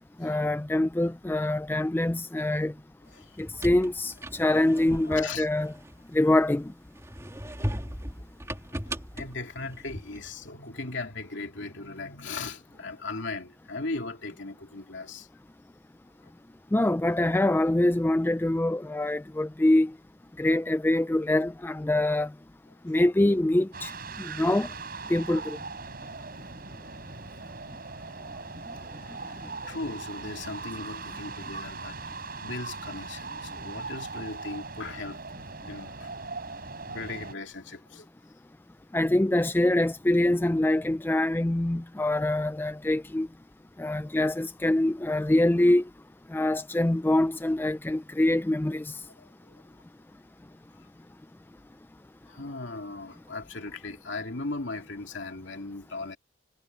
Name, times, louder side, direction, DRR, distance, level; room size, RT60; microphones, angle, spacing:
voice 1, 0.2-2.7 3.4-5.7 6.1-6.7 16.7-19.9 20.4-22.3 22.8-23.9 24.2-24.7 25.1-25.6 38.9-43.3 43.8-45.8 46.3-49.0, left 1 dB, 10° left, 0.3 m, -24 dB
voice 2, 3.1-3.7 5.0-5.5 6.2-6.3 7.5-8.0 8.8-15.3 22.9-23.0 29.2-32.0 32.4-35.2 35.6-36.1 36.8-38.1 38.9-39.1 46.4-46.6 46.9-47.0 49.2-49.5 50.7-50.8 52.3-56.2, left 3 dB, 65° left, 2.6 m, -38 dB
sound 1, 3.2-6.5 7.0-10.3, equal, 15° right, 3.2 m, -38 dB
sound 2, 23.7-37.3, right 4 dB, 50° right, 6.2 m, -40 dB
head